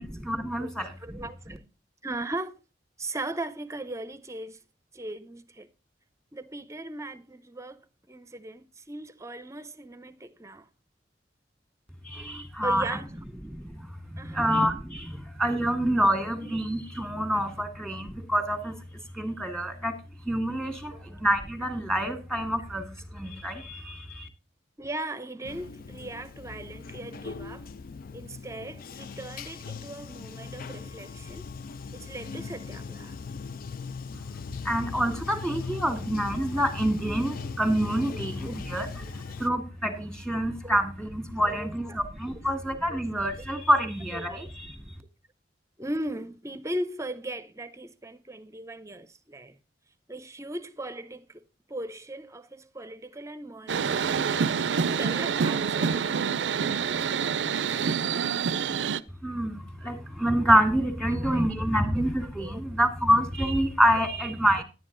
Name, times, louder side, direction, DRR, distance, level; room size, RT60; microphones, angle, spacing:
voice 1, 0.0-1.3 12.0-13.0 13.4-24.3 34.1-34.2 34.6-45.0 59.2-64.6, equal, 5° left, 1.7 m, -27 dB
voice 2, 1.0-1.6 2.0-2.5 3.0-4.6 4.9-5.7 6.3-10.7 12.6-13.2 14.2-14.4 20.9-21.0 24.8-27.7 28.1-31.5 31.9-33.2 38.1-38.2 38.5-38.6 40.6-40.8 41.4-41.7 42.9-43.0 44.1-44.4 45.8-49.6 50.1-51.4 51.7-56.3 61.1-61.4 62.4-62.6, right 1 dB, 15° right, 0.7 m, -38 dB
Bathtub (filling or washing), 25.4-39.5, left 5 dB, 55° left, 0.4 m, -39 dB
sound 1, 53.7-59.0, right 6 dB, 85° right, 0.5 m, -27 dB
10.5 x 9.3 x 3.8 m
head